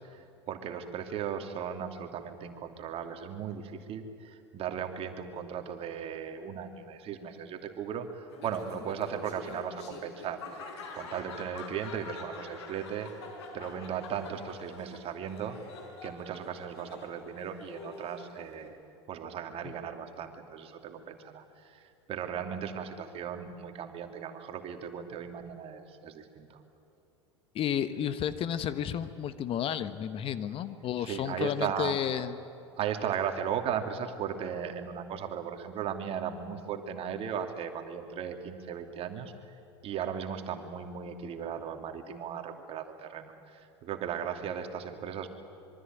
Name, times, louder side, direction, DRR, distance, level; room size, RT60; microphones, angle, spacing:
voice 1, 0.0-10.4 10.9-13.1 13.5-15.6 16.0-18.8 19.1-26.6 31.0-32.0 32.8-39.3 39.8-45.3, right 8 dB, 40° right, 6 dB, 2.8 m, -37 dB
Laughter, 8.3-18.7, left 3 dB, 65° left, 5.3 m, -46 dB
voice 2, 27.5-32.3, left 9 dB, 40° left, 13 dB, 1.3 m, -32 dB
25.5 x 23.5 x 9.3 m, 2.8 s
figure-of-eight pair, 80°, 15 cm